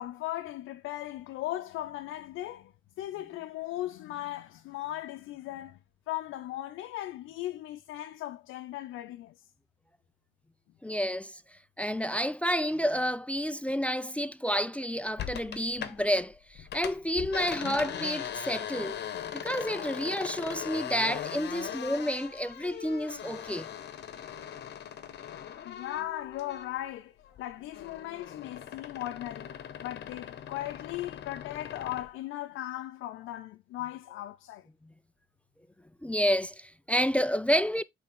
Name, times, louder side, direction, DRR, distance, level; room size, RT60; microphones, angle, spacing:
voice 1, 0.0-5.8 6.1-9.4 25.6-29.6 29.8-34.7, left 14 dB, 90° left, 0.6 m, -38 dB
voice 2, 10.8-11.4 11.8-19.0 19.3-23.7 36.0-37.8, equal, 5° left, 0.3 m, -30 dB
sound 1, 15.2-16.2 16.5-26.9 27.2-32.1, left 9 dB, 60° left, 1.0 m, -40 dB
8.8 x 3.5 x 3.7 m
cardioid pair, 90°, 20 cm